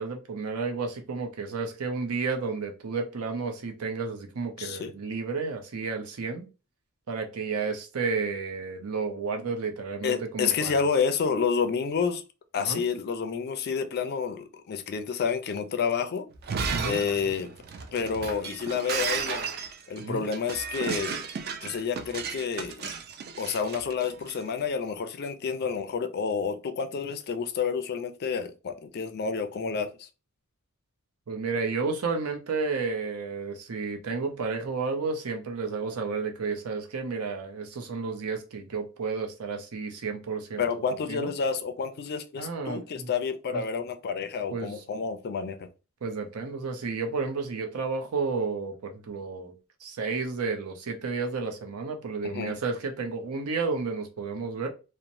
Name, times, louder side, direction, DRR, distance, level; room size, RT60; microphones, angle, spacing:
voice 1, 0.0-6.4 7.1-10.8 12.6-12.8 16.7-17.0 20.0-20.3 31.3-40.6 41.1-41.3 42.4-43.1 43.5-43.6 44.5-44.8 46.0-49.5 49.8-54.7, right 4 dB, 85° right, 0.6 m, -32 dB
voice 2, 4.6-4.9 10.0-12.2 12.5-16.3 16.8-17.6 17.9-19.5 19.9-21.2 21.6-22.9 23.4-30.1 40.6-45.7 52.2-52.6, left 6 dB, 45° left, 0.4 m, -29 dB
Shatter, 16.3-24.4, right 6 dB, 45° right, 0.4 m, -34 dB
2.9 x 2.1 x 2.5 m
head